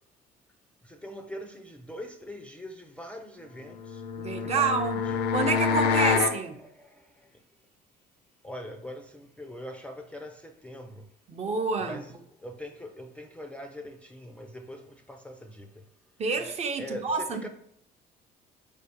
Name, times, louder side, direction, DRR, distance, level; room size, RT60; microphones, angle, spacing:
voice 1, 0.8-4.0 4.4-4.7 5.1-5.2 5.7-6.3 6.6-7.4 8.4-11.1 11.8-12.1 12.4-15.9 16.8-17.5, left 1 dB, 5° left, 4 dB, 0.4 m, -42 dB
sound 1, 3.8-6.4, left 6 dB, 75° left, 0.5 m, -26 dB
voice 2, 4.2-5.0 5.3-6.5 11.3-12.0 16.2-17.5, right 4 dB, 40° right, 5 dB, 0.7 m, -28 dB
4.6 x 3.4 x 2.9 m, 0.70 s
cardioid pair, 110°, 17 cm